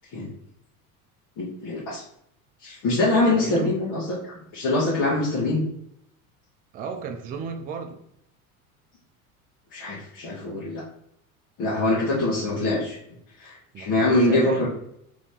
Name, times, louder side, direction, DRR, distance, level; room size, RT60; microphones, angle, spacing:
voice 1, 1.4-2.0 2.6-5.6 9.7-10.8 11.6-13.0 13.4-14.7, left 2 dB, 45° left, -7 dB, 1.2 m, -24 dB
voice 2, 3.3-3.7 6.7-8.0 12.3-12.6 13.7-14.6, right 6 dB, 20° right, 6 dB, 0.4 m, -34 dB
3.0 x 2.7 x 3.4 m, 0.73 s
hypercardioid pair, 80°, 43 cm